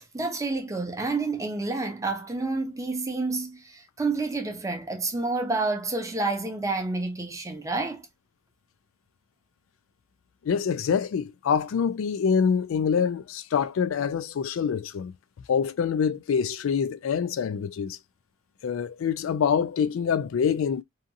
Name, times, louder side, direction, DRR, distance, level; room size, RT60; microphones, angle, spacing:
voice 1, 0.0-8.1, right 3 dB, 15° right, 0.6 m, -29 dB
voice 2, 10.5-15.1 15.5-18.0 18.6-20.8, left 7 dB, 80° left, 0.3 m, -25 dB
2.8 x 2.5 x 2.6 m
head